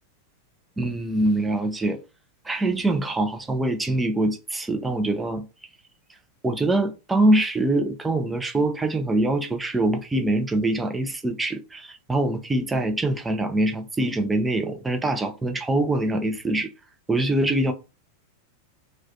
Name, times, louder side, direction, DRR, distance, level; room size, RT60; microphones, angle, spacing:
voice 1, 0.8-2.0 2.4-5.5 6.4-16.7 17.1-17.7, right 1 dB, 10° right, 0.4 m, -24 dB
2.3 x 2.1 x 2.6 m
figure-of-eight pair, 90°, 0 cm